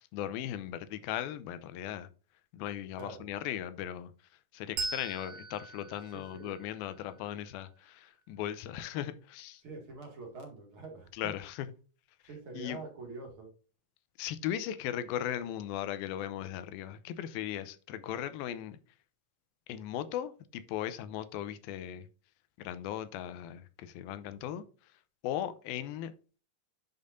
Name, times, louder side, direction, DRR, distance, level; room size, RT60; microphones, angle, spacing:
voice 1, 0.1-2.1 2.5-4.1 4.5-9.6 11.2-11.7 12.5-12.8 14.2-18.8 19.7-22.0 22.6-24.6 25.2-26.1, left 11 dB, 85° left, 2.5 m, -37 dB
voice 2, 3.0-3.3 5.9-6.6 9.6-11.3 12.2-13.5 24.5-24.7, right 3 dB, 40° right, 2.4 m, -46 dB
Bell, 4.8-7.8, right 3 dB, 90° right, 4.1 m, -41 dB
10.5 x 5.4 x 2.6 m
omnidirectional pair, 4.2 m